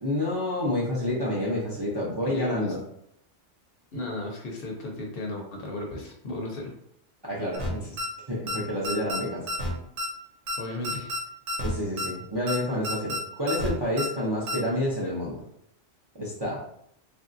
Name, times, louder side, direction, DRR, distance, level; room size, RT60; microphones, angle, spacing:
voice 1, 0.0-2.8 7.2-8.0 8.3-9.5 11.6-15.4 16.2-16.6, left 1 dB, 30° right, -5 dB, 0.5 m, -29 dB
voice 2, 2.3-2.7 3.9-6.7 10.6-11.1, left 2 dB, 60° left, 0 dB, 0.8 m, -35 dB
sound 1, 7.5-7.7 8.0-8.1 8.5-8.6 8.8-9.2 9.5-9.7 10.0-10.1 10.5-10.6 10.8-11.2 11.5-11.7 12.0-12.1 12.5-12.6 12.8-13.2 13.5-13.7 14.0-14.1 14.5-14.6, left 1 dB, 85° right, 1.1 m, -30 dB
3.1 x 2.6 x 2.5 m, 0.72 s
omnidirectional pair, 1.2 m